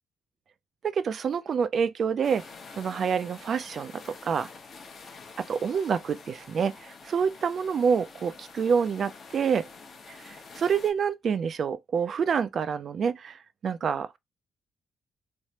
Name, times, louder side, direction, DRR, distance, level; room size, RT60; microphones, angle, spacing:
voice 1, 0.8-2.4 2.8-4.5 5.4-9.7 10.1-13.4 13.6-14.2, right 6 dB, 55° right, 0.3 m, -27 dB
sound 1, 2.2-10.9, left 4 dB, 50° left, 0.8 m, -47 dB
3.2 x 2.1 x 2.8 m
cardioid pair, 90°, 0 cm